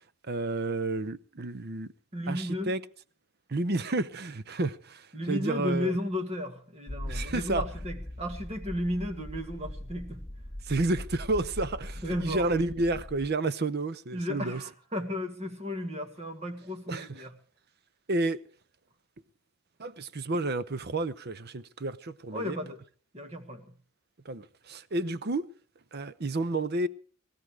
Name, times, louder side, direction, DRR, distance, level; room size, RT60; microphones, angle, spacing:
voice 1, 0.2-1.9 2.3-2.8 3.5-5.9 7.1-7.6 10.7-14.6 16.9-17.2 18.1-18.4 19.8-22.6 24.3-25.5 25.9-26.9, right 2 dB, 45° right, 0.7 m, -30 dB
voice 2, 2.1-2.7 5.1-10.2 12.0-12.5 14.1-17.3 22.3-22.8 23.1-23.7, left 1 dB, 30° right, 2.0 m, -34 dB
sound 1, 6.9-13.3, left 1 dB, 10° left, 1.8 m, -40 dB
19.0 x 13.5 x 4.7 m
head